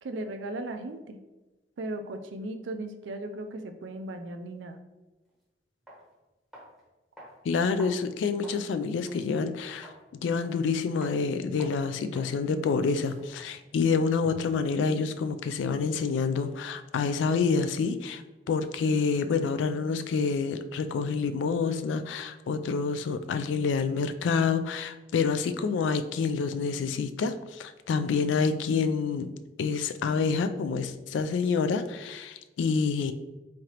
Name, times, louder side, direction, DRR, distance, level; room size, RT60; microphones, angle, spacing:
voice 1, 0.0-1.2 1.8-4.8, right 1 dB, 90° right, 6 dB, 0.4 m, -37 dB
sound 1, 5.3-5.4 5.9-6.0 6.5-6.8 7.2-8.7 9.1-9.2 9.8-10.0 10.4-10.7 11.0-11.2 11.6-11.8 12.2-12.4 12.7-14.6, equal, ahead, 0.8 m, -49 dB
voice 2, 7.4-9.9 10.2-29.3 29.6-33.1, left 5 dB, 80° left, 10 dB, 0.3 m, -28 dB
3.7 x 3.2 x 2.9 m, 1.1 s
head